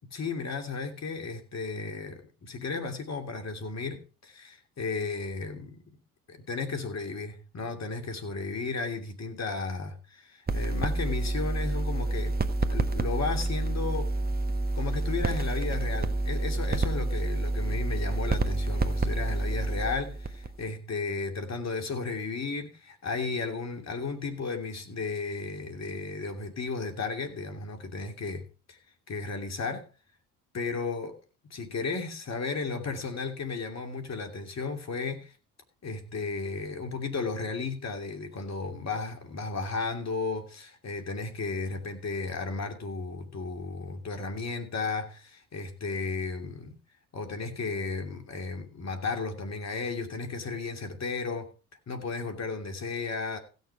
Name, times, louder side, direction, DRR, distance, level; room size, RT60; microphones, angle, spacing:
voice 1, 0.1-6.0 6.3-12.4 12.7-14.1 14.7-28.8 29.1-29.9 30.5-31.2 31.4-35.3 35.8-46.8 47.1-51.5 51.9-53.4, left 4 dB, 40° left, 2.9 m, -34 dB
sound 1, 10.5-20.7, right 2 dB, 25° right, 1.3 m, -29 dB
16.0 x 6.8 x 4.7 m
hypercardioid pair, 60°, 40 cm